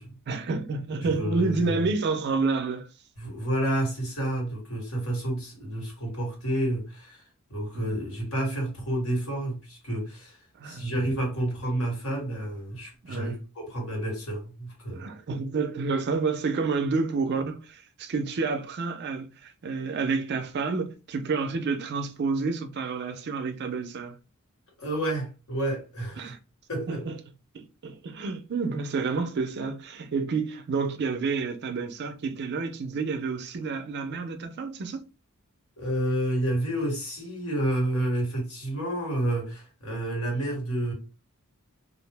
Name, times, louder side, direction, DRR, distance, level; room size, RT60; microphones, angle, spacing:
voice 1, 0.3-2.9 7.7-8.0 10.6-10.9 13.0-13.4 14.9-24.2 26.2-26.4 26.9-27.2 27.5-35.0, right 4 dB, 50° right, 0.4 m, -29 dB
voice 2, 1.0-1.9 3.2-7.2 7.5-15.0 24.8-26.3 26.7-27.0 35.8-40.9, right 1 dB, 85° left, 1.4 m, -30 dB
2.4 x 2.0 x 3.3 m
head